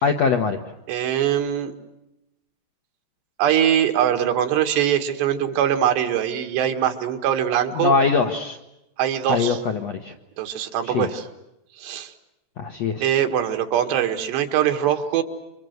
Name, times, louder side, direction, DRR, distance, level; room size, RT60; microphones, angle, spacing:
voice 1, 0.0-0.6 7.8-8.6 9.3-10.1 10.9-11.1 12.6-13.1, left 5 dB, 70° left, 4 dB, 1.6 m, -22 dB
voice 2, 0.9-1.7 3.4-7.9 9.0-9.6 10.4-11.3 11.8-12.1 13.0-15.2, right 10 dB, 85° right, 7 dB, 3.9 m, -22 dB
28.5 x 25.0 x 8.0 m, 0.90 s
omnidirectional pair, 4.8 m